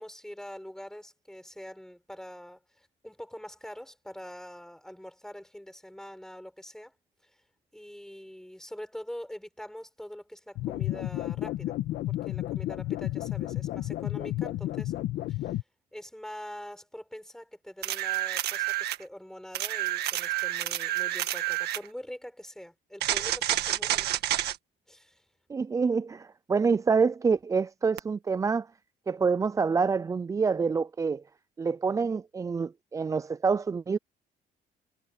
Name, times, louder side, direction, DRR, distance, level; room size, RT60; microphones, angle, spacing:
voice 1, 0.0-6.9 7.2-7.3 7.7-11.7 12.1-14.9 15.3-15.6 15.9-24.3 24.9-25.2, equal, 5° left, 6.8 m, -44 dB
sound 1, 10.6-15.6, left 15 dB, 75° left, 1.5 m, -32 dB
sound 2, 17.8-19.0 19.5-21.9 23.0-24.6 28.0-28.1, right 14 dB, 75° right, 1.7 m, -29 dB
voice 2, 25.5-28.7 29.1-31.2 31.6-34.0, right 5 dB, 20° right, 0.4 m, -27 dB
cardioid pair, 110°, 17 cm